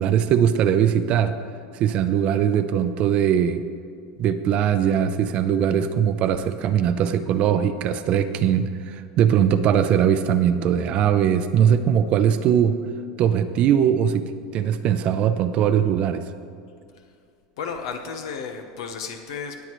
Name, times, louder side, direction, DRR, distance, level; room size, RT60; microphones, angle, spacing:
voice 1, 0.0-1.3 1.8-3.6 4.2-12.8 13.2-14.2 14.5-16.2, right 9 dB, 45° right, 10 dB, 0.6 m, -20 dB
voice 2, 17.6-19.6, left 6 dB, 85° left, 5 dB, 1.0 m, -33 dB
20.0 x 8.0 x 3.1 m, 2.3 s
supercardioid pair, 135°, 3 cm